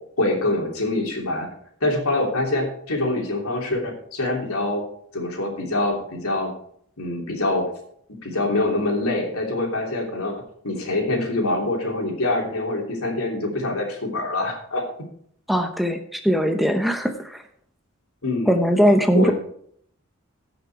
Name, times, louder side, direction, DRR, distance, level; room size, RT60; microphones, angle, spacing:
voice 1, 0.2-1.5 1.8-4.8 5.1-6.5 7.0-7.7 8.2-14.8 18.2-18.6 19.1-19.3, left 2 dB, 90° left, 1 dB, 3.0 m, -25 dB
voice 2, 15.5-17.4 18.5-19.3, equal, ahead, 6 dB, 0.7 m, -20 dB
15.5 x 6.0 x 4.6 m, 0.65 s
head